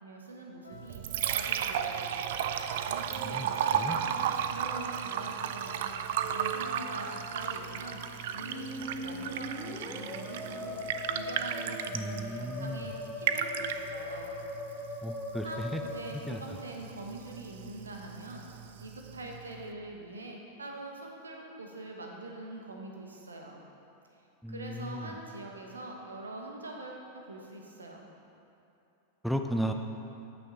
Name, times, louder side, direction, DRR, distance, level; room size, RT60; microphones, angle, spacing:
voice 1, 0.0-2.3 2.9-6.0 6.3-8.0 8.3-10.8 11.1-14.3 15.4-23.6 24.1-24.2 24.5-28.1, right 2 dB, 75° right, 1 dB, 1.2 m, -44 dB
sound 1, 0.6-8.0, equal, 80° left, 1.1 m, -50 dB
Liquid, 0.7-19.7, right 9 dB, 55° right, 0.4 m, -35 dB
Musical instrument, 8.3-17.1, left 2 dB, 15° left, 1.3 m, -40 dB
voice 2, 11.9-12.9 15.0-15.8 16.3-16.4 24.4-25.1 29.2-29.7, equal, ahead, 4 dB, 0.5 m, -34 dB
13.5 x 6.0 x 3.9 m, 2.9 s
figure-of-eight pair, 90°, 0 cm